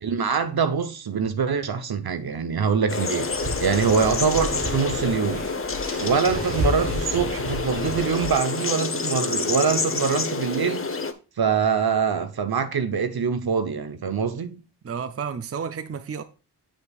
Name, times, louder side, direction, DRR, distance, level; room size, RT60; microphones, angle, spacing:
voice 1, 0.0-3.3 3.6-5.5 6.0-10.9 11.4-14.6, right 6 dB, 60° right, 0.9 m, -24 dB
sound 1, 2.9-11.1, left 4 dB, 30° left, 0.9 m, -28 dB
sound 2, 3.2-8.4, equal, 90° right, 2.8 m, -32 dB
voice 2, 14.8-16.2, right 6 dB, 35° right, 0.6 m, -31 dB
7.9 x 6.8 x 2.4 m
cardioid pair, 45°, 42 cm